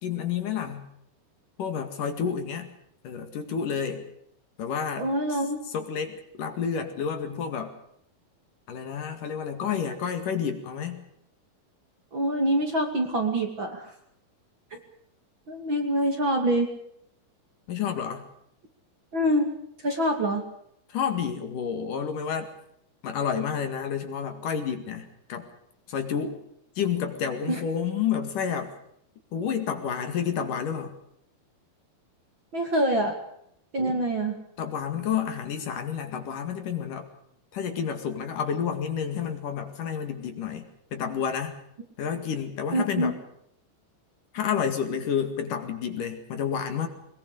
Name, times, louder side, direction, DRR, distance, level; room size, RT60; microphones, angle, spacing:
voice 1, 0.0-0.9 1.6-2.7 3.0-4.0 4.6-7.7 8.7-11.0 17.7-18.2 20.9-22.5 23.0-25.5 25.9-26.4 26.8-28.7 29.3-30.9 33.8-34.0 34.6-37.1 37.5-41.6 42.0-43.2 44.3-46.9, left 7 dB, 60° left, 7 dB, 3.4 m, -30 dB
voice 2, 5.0-5.6 12.1-13.9 15.5-16.7 19.1-19.5 19.8-20.4 27.5-27.6 32.5-33.1 33.7-34.3 42.7-43.1, right 1 dB, 35° right, 4 dB, 2.8 m, -25 dB
22.5 x 21.5 x 6.6 m, 0.72 s
omnidirectional pair, 4.5 m